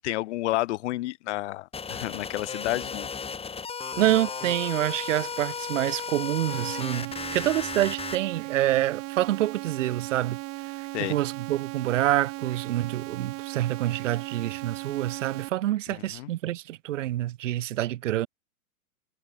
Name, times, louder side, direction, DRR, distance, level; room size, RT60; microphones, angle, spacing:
voice 1, 0.0-3.1 10.9-11.2 15.9-16.3, left 17 dB, 50° left, 4.5 m, -30 dB
sound 1, 1.7-8.2, left 5 dB, 15° left, 6.0 m, -35 dB
voice 2, 4.0-10.4 11.0-18.3, right 14 dB, 55° right, 0.7 m, -27 dB
sound 2, 6.5-15.5, right 25 dB, 30° right, 1.4 m, -37 dB
figure-of-eight pair, 105°, 44 cm